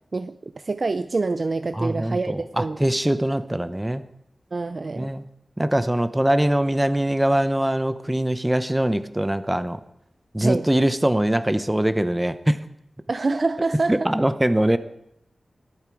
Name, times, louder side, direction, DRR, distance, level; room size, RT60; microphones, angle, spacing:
voice 1, 0.1-2.9 4.5-5.1 10.4-10.7 13.1-14.1, right 3 dB, 55° right, 11 dB, 0.4 m, -26 dB
voice 2, 1.7-4.0 5.0-5.2 5.6-9.8 10.3-12.6 13.9-14.8, right 1 dB, 15° right, 12 dB, 0.8 m, -22 dB
20.5 x 7.4 x 4.8 m, 0.77 s
wide cardioid pair, 65°, 0 cm